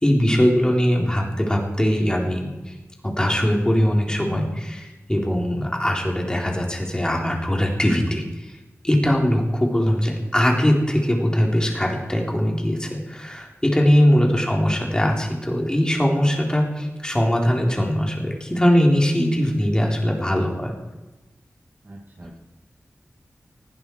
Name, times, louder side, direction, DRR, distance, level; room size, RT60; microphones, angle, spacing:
voice 1, 0.0-2.7 3.0-8.5 8.8-20.7, equal, 15° left, 0 dB, 3.7 m, -21 dB
voice 2, 21.8-22.4, right 1 dB, 40° right, -2 dB, 2.2 m, -36 dB
19.0 x 15.5 x 4.7 m, 1.1 s
wide cardioid pair, 85°, 5 cm